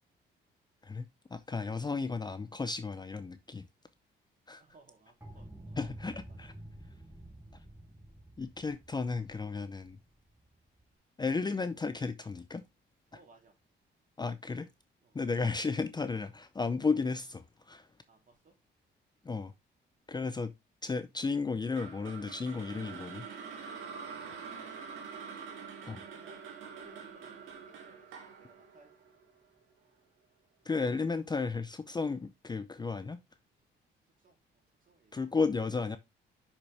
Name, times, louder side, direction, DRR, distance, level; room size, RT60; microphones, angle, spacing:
voice 1, 1.3-3.6 4.5-4.6 5.8-6.5 8.4-10.0 11.2-12.6 14.2-14.7 15.1-17.9 19.3-19.5 20.1-20.5 20.8-23.2 25.8-26.0 30.7-33.2 35.1-36.0, left 4 dB, 20° left, 0.5 m, -33 dB
voice 2, 4.6-6.5 10.1-10.3 13.1-13.6 15.0-15.2 18.1-18.5 20.2-20.3 24.3-24.9 26.0-29.2 34.0-35.3, right 3 dB, 45° right, 3.5 m, -63 dB
sound 1, 5.2-10.9, right 1 dB, 10° right, 2.9 m, -50 dB
sound 2, 21.7-29.9, right 6 dB, 85° right, 2.2 m, -46 dB
6.2 x 5.9 x 3.4 m
cardioid pair, 90°, 20 cm